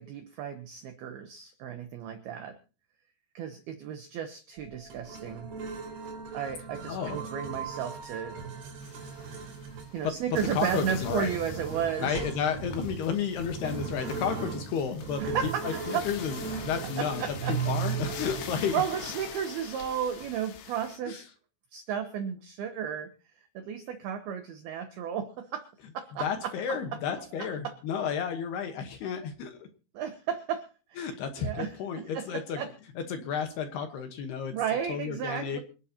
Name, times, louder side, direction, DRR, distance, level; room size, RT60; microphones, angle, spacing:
voice 1, 0.0-2.6 3.3-5.5 6.3-8.4 9.9-12.3 15.2-16.1 17.0-17.6 18.7-21.2 21.7-23.1 23.6-25.7 25.9-26.8 27.4-27.8 29.9-32.7 34.5-35.6, right 8 dB, 80° right, 7 dB, 2.2 m, -34 dB
sound 1, 4.6-20.3, right 5 dB, 55° right, 4.9 m, -38 dB
voice 2, 6.9-7.3 10.0-10.1 10.5-11.3 12.0-17.2 17.5-18.8 21.1-21.2 26.2-29.7 31.0-32.6 33.1-34.5 34.9-35.6, left 7 dB, 70° left, 6 dB, 2.8 m, -32 dB
sound 2, 8.8-21.0, left 9 dB, 85° left, 4.4 m, -45 dB
26.0 x 11.0 x 2.9 m, 0.35 s
omnidirectional pair, 5.8 m